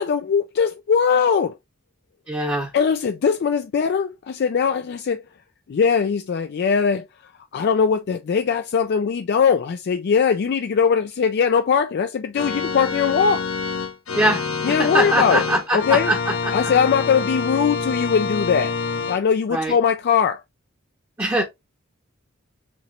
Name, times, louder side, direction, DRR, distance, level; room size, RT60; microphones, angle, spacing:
voice 1, 0.0-1.5 2.7-5.2 5.7-7.1 7.5-13.5 14.6-15.4 15.7-16.1 16.5-18.7 19.1-20.4, left 6 dB, 55° left, 0.3 m, -20 dB
voice 2, 2.3-2.7 14.1-16.5 19.5-19.7 21.2-21.4, right 1 dB, 15° right, 0.8 m, -22 dB
Organ, 12.3-19.2, left 5 dB, 85° left, 0.9 m, -26 dB
5.1 x 3.0 x 3.1 m
head